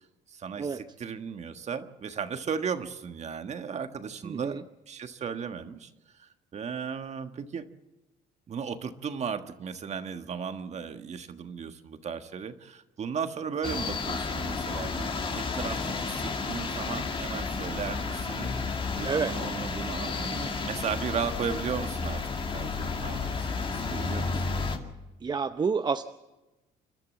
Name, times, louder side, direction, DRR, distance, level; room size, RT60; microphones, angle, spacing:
voice 1, 0.3-4.6 4.9-5.9 6.2-7.7 8.5-18.5 18.9-22.2 22.5-24.4, right 6 dB, 40° right, 8 dB, 1.5 m, -36 dB
voice 2, 4.2-4.6 19.0-19.4 25.2-26.0, right 5 dB, 25° right, 9 dB, 0.7 m, -29 dB
sound 1, 13.6-24.8, left 4 dB, 30° left, 2.3 m, -32 dB
29.0 x 12.5 x 7.6 m, 1.1 s
cardioid pair, 110°, 17 cm